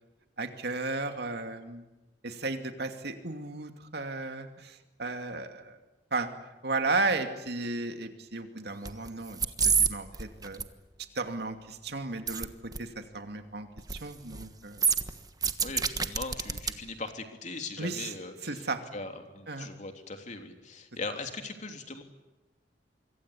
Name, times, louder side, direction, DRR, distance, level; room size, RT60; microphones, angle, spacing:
voice 1, 0.4-1.8 2.2-5.8 6.1-6.3 6.6-9.4 9.6-10.6 11.1-14.9 17.8-18.1 18.4-18.8 19.5-19.7, right 3 dB, 65° right, 6 dB, 2.6 m, -34 dB
sound 1, 8.9-9.1 9.3-9.9 10.1-10.6 12.3-12.5 12.7-12.8 13.8-14.0 14.3-14.5 14.8-16.7 17.1-17.2, right 6 dB, 20° right, 1.3 m, -27 dB
voice 2, 15.6-18.6 18.9-22.0, left 3 dB, 45° left, 5 dB, 3.2 m, -40 dB
26.0 x 23.5 x 8.5 m, 1.1 s
head